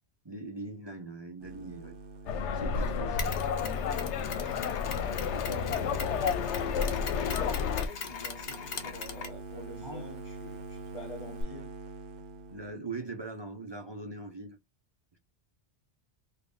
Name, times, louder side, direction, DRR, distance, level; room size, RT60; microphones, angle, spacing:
voice 1, 0.2-2.0 2.5-3.4 5.1-5.9 9.8-10.1 12.5-14.6, right 3 dB, 30° right, 0.5 m, -41 dB
sound 1, 1.4-12.7, right 4 dB, 80° right, 0.9 m, -47 dB
sound 2, 2.3-7.9, left 6 dB, 85° left, 0.9 m, -31 dB
Mechanisms, 3.2-11.4, left 5 dB, 60° left, 1.0 m, -41 dB
voice 2, 5.4-11.7, left 2 dB, 35° left, 0.7 m, -48 dB
3.5 x 2.2 x 3.9 m
omnidirectional pair, 1.2 m